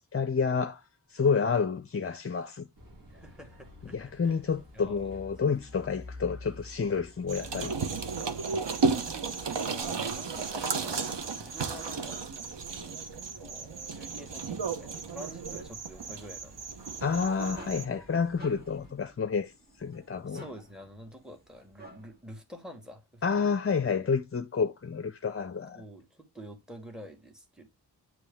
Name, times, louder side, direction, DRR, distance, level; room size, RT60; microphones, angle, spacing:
voice 1, 0.1-0.8 1.1-2.7 3.9-7.7 17.0-20.4 23.2-25.8, left 5 dB, 35° left, 0.5 m, -29 dB
sound 1, 2.8-18.9, left 1 dB, 50° right, 1.8 m, -51 dB
voice 2, 3.1-4.4 4.7-5.1 8.2-12.2 12.7-13.0 13.3-17.0 20.3-23.6 25.7-27.7, equal, ahead, 1.5 m, -48 dB
sound 2, 7.3-17.9, right 4 dB, 85° right, 1.0 m, -33 dB
sound 3, 17.5-22.3, right 1 dB, 25° right, 1.8 m, -52 dB
9.0 x 3.1 x 3.4 m
wide cardioid pair, 60°, 41 cm